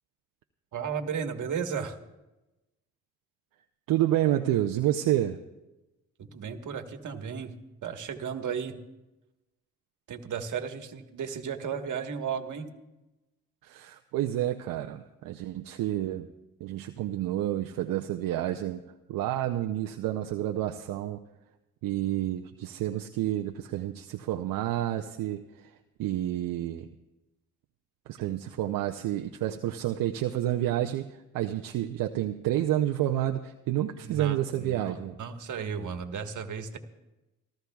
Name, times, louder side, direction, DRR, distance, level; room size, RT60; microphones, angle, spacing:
voice 1, 0.7-2.0 6.2-7.5 7.8-8.8 10.1-12.7 34.0-36.8, right 7 dB, 65° right, 6 dB, 1.5 m, -34 dB
voice 2, 3.9-5.4 13.6-16.3 16.6-18.8 19.1-21.2 21.8-26.9 28.1-35.2, right 13 dB, 80° right, 4 dB, 0.7 m, -29 dB
28.5 x 13.0 x 2.3 m, 1.0 s
supercardioid pair, 65°, 33 cm